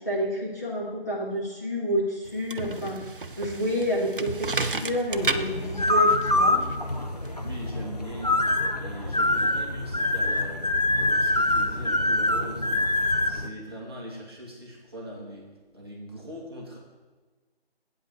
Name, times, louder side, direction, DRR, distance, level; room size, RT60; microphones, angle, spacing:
voice 1, 0.0-3.0 3.4-6.6, equal, 15° left, -8 dB, 1.3 m, -29 dB
sound 1, 2.3-7.7, right 3 dB, 60° right, 0.7 m, -33 dB
sound 2, 5.1-13.5, left 2 dB, 40° left, 0.6 m, -25 dB
voice 2, 7.4-16.8, equal, 25° right, -4 dB, 1.5 m, -41 dB
8.8 x 5.3 x 6.7 m, 1.3 s
figure-of-eight pair, 170°, 30 cm